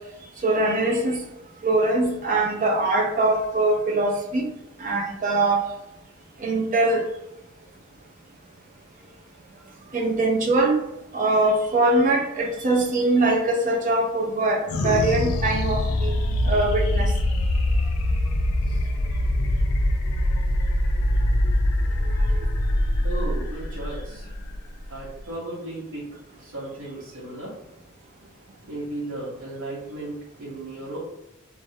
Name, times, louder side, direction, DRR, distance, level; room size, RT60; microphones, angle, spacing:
voice 1, 0.4-1.2 1.6-4.5 4.8-5.6 6.4-7.0 9.9-10.8 11.1-16.1 16.4-17.1 22.3-22.4, right 2 dB, 35° right, 0 dB, 0.4 m, -22 dB
sound 1, 14.7-25.4, left 1 dB, 75° left, 0.3 m, -23 dB
voice 2, 23.0-24.3 24.9-26.1 26.4-27.5 28.7-31.0, right 1 dB, 70° right, -9 dB, 0.8 m, -35 dB
2.3 x 2.0 x 2.7 m, 0.91 s
head